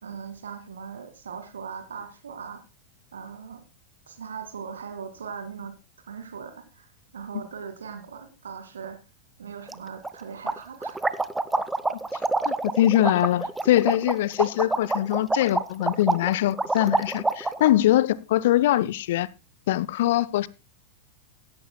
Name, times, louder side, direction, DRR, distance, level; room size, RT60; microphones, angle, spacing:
voice 1, 0.0-2.6 3.1-3.6 4.1-5.7 6.1-9.0 9.4-11.0, right 6 dB, 70° right, 2.3 m, -39 dB
sound 1, 9.7-9.8 10.0-10.1 10.5-17.7, right 2 dB, 10° right, 0.7 m, -27 dB
voice 2, 12.5-19.3 19.7-20.5, left 13 dB, 55° left, 0.5 m, -22 dB
16.5 x 11.5 x 2.2 m
figure-of-eight pair, 90°, 0 cm